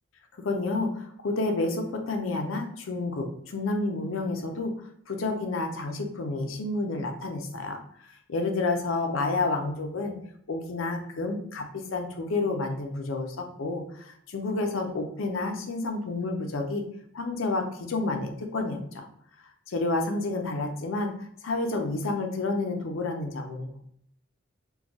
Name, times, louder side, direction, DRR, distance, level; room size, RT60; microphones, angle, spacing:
voice 1, 0.4-4.7 5.1-7.8 8.3-10.1 10.5-16.8 17.1-19.0 19.7-21.1 21.4-23.8, left 2 dB, 85° left, 4 dB, 0.5 m, -30 dB
2.5 x 2.3 x 3.9 m, 0.69 s
head